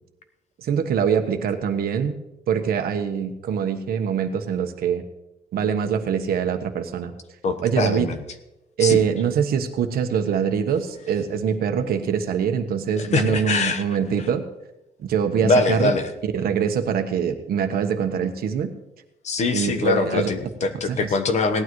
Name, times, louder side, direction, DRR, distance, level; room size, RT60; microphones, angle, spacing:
voice 1, 0.6-5.0 5.5-7.1 7.6-8.1 8.8-14.4 15.0-15.9 16.3-18.7 19.5-20.3 20.9-21.0, right 7 dB, 65° right, 6 dB, 1.2 m, -23 dB
voice 2, 7.4-8.2 8.8-9.0 13.0-13.8 15.4-16.1 19.2-21.6, left 3 dB, 45° left, 8 dB, 1.1 m, -23 dB
17.5 x 12.0 x 3.1 m, 0.92 s
cardioid pair, 170°, 17 cm